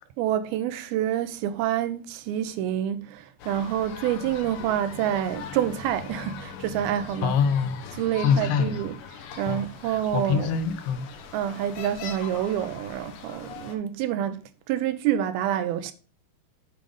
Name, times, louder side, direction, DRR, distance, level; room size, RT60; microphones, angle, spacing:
voice 1, 0.2-7.3 8.0-9.0 9.4-10.5 11.3-14.4 14.7-15.9, right 11 dB, 80° right, 2.3 m, -27 dB
sound 1, 3.4-13.8, left 6 dB, 70° left, 2.6 m, -41 dB
voice 2, 7.2-8.8 9.5-11.1, left 6 dB, 90° left, 2.9 m, -25 dB
7.7 x 5.0 x 5.3 m
omnidirectional pair, 4.5 m